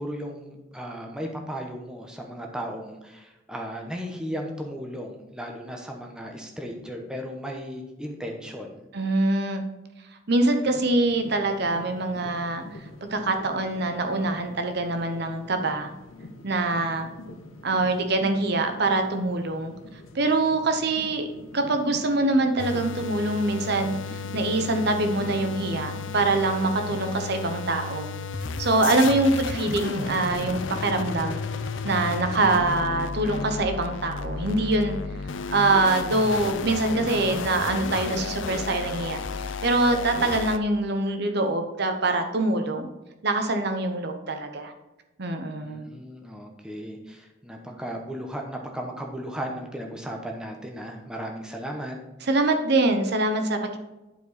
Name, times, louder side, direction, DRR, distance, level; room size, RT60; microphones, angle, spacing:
voice 1, 0.0-8.8 26.9-27.2 28.9-29.2 45.6-52.0, equal, 5° right, 1 dB, 1.0 m, -36 dB
voice 2, 8.9-9.6 10.3-12.6 13.0-15.9 16.4-17.1 17.6-19.7 20.1-21.3 21.5-28.1 28.6-31.4 31.8-35.0 35.5-39.2 39.6-42.9 43.2-44.7 45.2-45.9 52.3-53.8, right 2 dB, 55° right, 6 dB, 0.8 m, -24 dB
sound 1, 10.6-26.5, left 2 dB, 85° left, 0.9 m, -44 dB
sound 2, 22.6-40.6, left 4 dB, 70° left, 0.5 m, -33 dB
11.0 x 4.8 x 4.1 m, 1.0 s
head